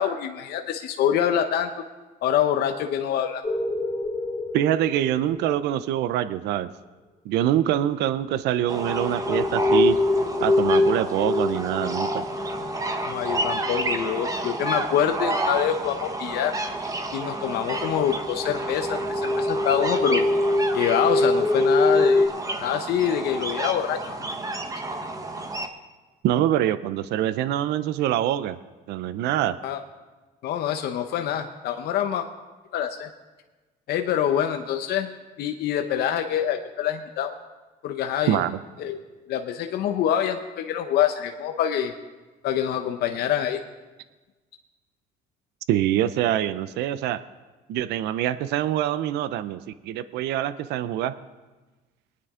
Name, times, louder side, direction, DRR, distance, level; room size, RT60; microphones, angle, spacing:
voice 1, 0.0-1.7 2.2-3.4 13.1-16.6 17.1-20.3 20.7-22.3 22.6-24.2 29.6-29.8 30.4-32.3 32.7-33.1 33.9-35.1 35.4-37.4 37.8-38.4 38.8-39.0 39.3-41.9 42.4-43.6, left 9 dB, 70° left, 5 dB, 0.8 m, -25 dB
sound 1, 3.4-5.8 8.7-14.3 15.1-15.2 15.5-15.7 16.3-16.4 16.6-16.8 17.1-22.3, left 2 dB, 25° left, 2.8 m, -25 dB
voice 2, 4.5-6.7 7.3-10.0 10.4-12.3 26.2-28.6 28.9-29.6 38.3-38.6 45.7-47.2 47.7-51.1, right 12 dB, 80° right, 14 dB, 0.5 m, -24 dB
sound 2, 8.7-25.7, right 2 dB, 20° right, 1.2 m, -31 dB
22.0 x 9.5 x 3.7 m, 1.2 s
cardioid pair, 110°, 17 cm